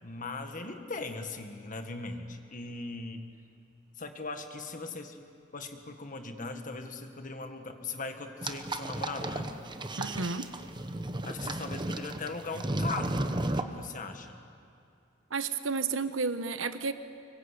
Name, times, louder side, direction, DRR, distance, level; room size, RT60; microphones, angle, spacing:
voice 1, 0.0-3.2 4.0-5.2 5.5-9.5 11.2-13.3 13.5-14.4, left 3 dB, 45° left, 6 dB, 1.7 m, -39 dB
sound 1, 8.4-13.6, right 1 dB, 25° right, 1.0 m, -34 dB
voice 2, 10.0-10.5 15.3-16.9, right 4 dB, 85° right, 11 dB, 1.1 m, -31 dB
25.5 x 22.5 x 8.2 m, 2.5 s
head